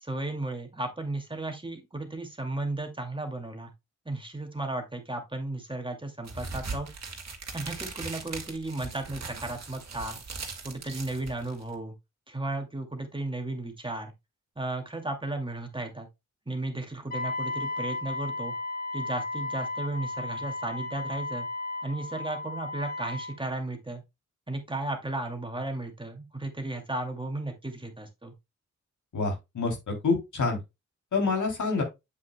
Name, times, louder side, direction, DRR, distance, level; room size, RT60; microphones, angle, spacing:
voice 1, 0.0-3.7 4.1-6.9 7.5-10.2 10.6-11.9 12.3-14.1 14.6-16.1 16.5-18.5 18.9-21.5 21.8-24.0 24.5-28.3, right 2 dB, 15° right, 2.3 m, -34 dB
sound 1, 6.2-11.7, right 4 dB, 55° right, 2.0 m, -39 dB
Wind instrument woodwind instrument, 17.1-23.3, left 2 dB, 30° left, 3.9 m, -34 dB
voice 2, 29.1-30.6 31.1-31.8, left 4 dB, 70° left, 3.2 m, -27 dB
8.1 x 7.4 x 2.2 m
cardioid pair, 55°, 31 cm